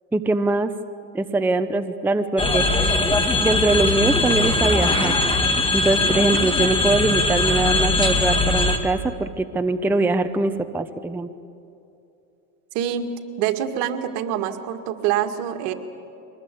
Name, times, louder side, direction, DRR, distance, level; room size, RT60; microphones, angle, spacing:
voice 1, 0.1-0.7 1.1-3.0 3.4-5.2 5.7-11.3, right 2 dB, 5° right, 8 dB, 0.7 m, -22 dB
sound 1, 2.4-8.8, left 2 dB, 10° left, 1.9 m, -20 dB
voice 2, 12.7-13.1 13.4-15.7, right 10 dB, 65° right, 6 dB, 2.2 m, -25 dB
24.0 x 20.0 x 8.5 m, 2.7 s
supercardioid pair, 120°, 46 cm